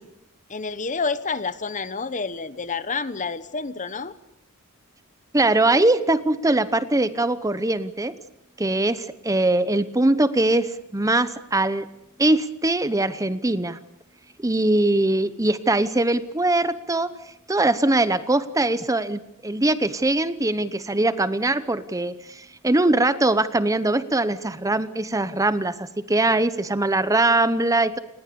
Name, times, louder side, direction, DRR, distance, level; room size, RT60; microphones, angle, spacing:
voice 1, 0.5-4.1, left 4 dB, 35° left, 14 dB, 1.1 m, -29 dB
voice 2, 5.3-8.1 8.6-11.9 12.2-13.8 14.4-17.1 17.5-28.0, right 2 dB, 15° right, 13 dB, 0.9 m, -22 dB
29.0 x 20.5 x 6.9 m, 0.81 s
head